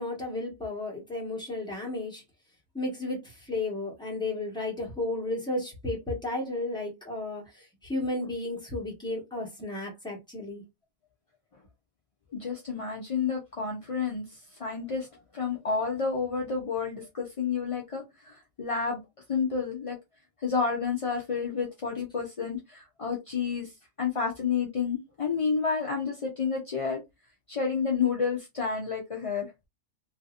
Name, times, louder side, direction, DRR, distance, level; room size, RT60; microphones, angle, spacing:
voice 1, 0.0-2.2 2.7-10.6, left 2 dB, 5° left, 1.1 m, -33 dB
voice 2, 12.3-15.1 15.3-19.0 19.3-20.0 20.4-23.7 24.0-27.0 27.5-29.5, left 5 dB, 45° left, 0.4 m, -30 dB
3.2 x 2.7 x 2.4 m
omnidirectional pair, 1.4 m